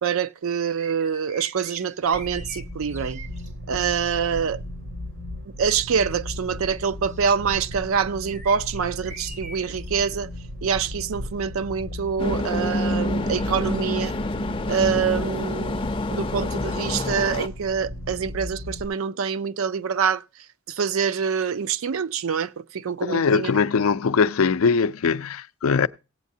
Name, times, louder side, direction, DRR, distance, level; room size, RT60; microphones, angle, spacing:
voice 1, 0.0-3.2 3.7-4.6 5.5-10.3 10.6-14.1 14.7-20.2 20.7-23.5, right 6 dB, 70° right, 0.4 m, -25 dB
sound 1, 0.8-3.5 4.3-4.7 5.3-10.0 10.5-10.7 12.5-12.6, right 3 dB, 35° right, 0.7 m, -44 dB
sound 2, 2.1-18.9, left 1 dB, 85° right, 3.4 m, -36 dB
sound 3, 12.2-17.5, left 1 dB, 25° left, 0.5 m, -27 dB
voice 2, 23.0-25.9, left 5 dB, 85° left, 0.4 m, -21 dB
17.0 x 8.3 x 2.7 m
head